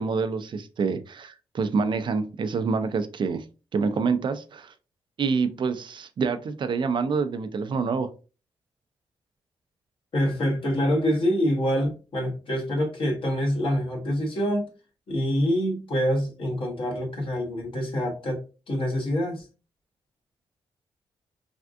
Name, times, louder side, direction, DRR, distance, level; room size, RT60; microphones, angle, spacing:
voice 1, 0.0-3.4 3.7-4.7 5.2-8.1, right 5 dB, 55° right, 10 dB, 0.4 m, -27 dB
voice 2, 10.1-14.7 15.1-18.4 18.7-19.5, equal, 65° left, 0 dB, 1.3 m, -26 dB
3.4 x 2.5 x 2.4 m, 0.33 s
cardioid pair, 60°, 10 cm